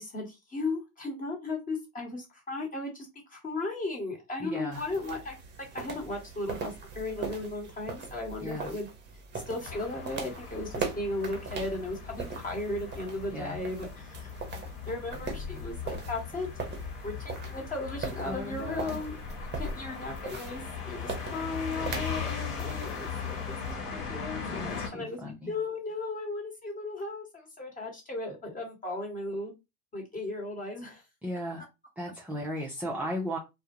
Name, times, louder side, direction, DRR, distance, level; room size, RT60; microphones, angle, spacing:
voice 1, 0.0-5.4 5.7-8.9 9.5-14.3 14.9-16.5 17.0-19.2 19.6-25.2 25.5-29.5 29.9-31.0, left 2 dB, 20° left, 1 dB, 1.2 m, -36 dB
voice 2, 4.4-4.8 8.4-8.7 13.3-13.6 18.2-19.0 24.5-25.5 31.2-31.6 32.0-33.4, equal, 5° right, -2 dB, 0.4 m, -36 dB
sound 1, 4.7-23.7, right 4 dB, 25° right, 0.8 m, -41 dB
sound 2, 9.6-24.9, left 6 dB, 50° left, 1.2 m, -39 dB
2.3 x 2.1 x 2.9 m, 0.23 s
hypercardioid pair, 90°, 44 cm